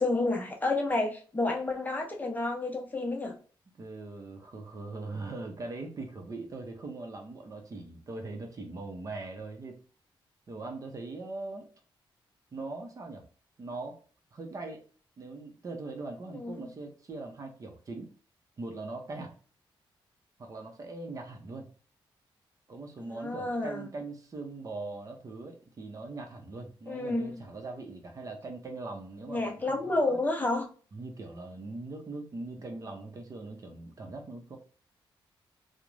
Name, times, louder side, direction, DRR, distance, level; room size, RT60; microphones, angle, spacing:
voice 1, 0.0-3.4 16.3-16.6 23.1-23.8 26.9-27.4 29.3-30.7, left 2 dB, 20° left, 0.6 m, -30 dB
voice 2, 3.8-9.8 10.5-11.7 12.5-13.2 13.6-14.0 14.3-14.8 15.2-18.1 18.6-19.4 20.4-21.7 22.7-30.2 30.9-34.6, right 3 dB, 40° right, 0.6 m, -41 dB
2.4 x 2.0 x 3.0 m
cardioid pair, 110°, 9 cm